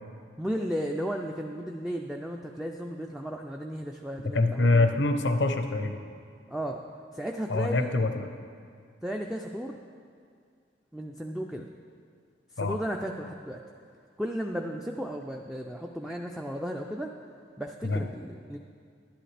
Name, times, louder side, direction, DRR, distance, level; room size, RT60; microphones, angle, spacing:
voice 1, 0.4-4.9 6.5-6.8 7.1-7.9 9.0-9.8 10.9-11.7 12.6-13.6 14.2-17.1 17.6-18.6, equal, 5° right, 1 dB, 0.3 m, -34 dB
voice 2, 4.3-6.0 7.5-8.3 12.6-12.8 17.8-18.0, left 2 dB, 75° left, 7 dB, 0.7 m, -25 dB
11.5 x 10.5 x 3.3 m, 2.2 s
head